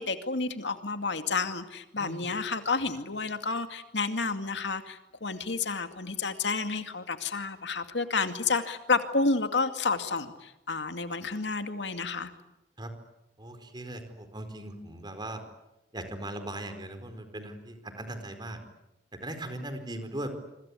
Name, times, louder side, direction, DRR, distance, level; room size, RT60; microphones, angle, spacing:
voice 1, 0.0-12.3, left 4 dB, 75° left, 8 dB, 2.3 m, -30 dB
voice 2, 2.0-2.3 12.8-12.9 13.4-15.4 15.9-18.6 19.1-20.3, right 1 dB, 25° right, 8 dB, 4.6 m, -39 dB
27.5 x 24.5 x 8.5 m, 0.93 s
head